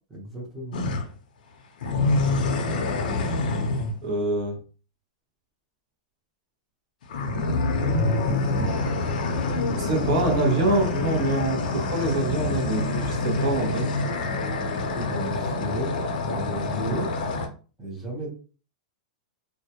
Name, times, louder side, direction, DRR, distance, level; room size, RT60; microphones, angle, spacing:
voice 1, 0.1-0.8 14.9-16.0 16.3-17.1 17.8-18.3, right 1 dB, ahead, -5 dB, 0.7 m, -33 dB
sound 1, 0.7-1.1 1.8-4.0 7.0-17.5, left 2 dB, 70° left, 0.5 m, -26 dB
voice 2, 4.0-4.6 7.8-8.1 9.8-13.9, right 2 dB, 40° right, 1 dB, 0.6 m, -26 dB
2.2 x 2.0 x 2.7 m, 0.36 s
supercardioid pair, 175°, 5 cm